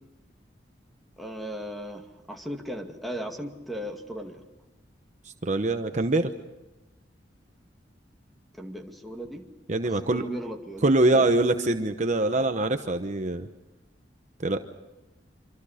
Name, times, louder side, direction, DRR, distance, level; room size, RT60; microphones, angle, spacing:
voice 1, 1.2-4.4 8.5-9.5 9.8-11.3 12.3-12.5, equal, ahead, 3 dB, 2.3 m, -37 dB
voice 2, 5.4-6.3 9.7-10.2 10.8-13.5 14.4-14.6, right 2 dB, 40° right, 7 dB, 0.9 m, -23 dB
26.0 x 26.0 x 5.1 m, 1.0 s
head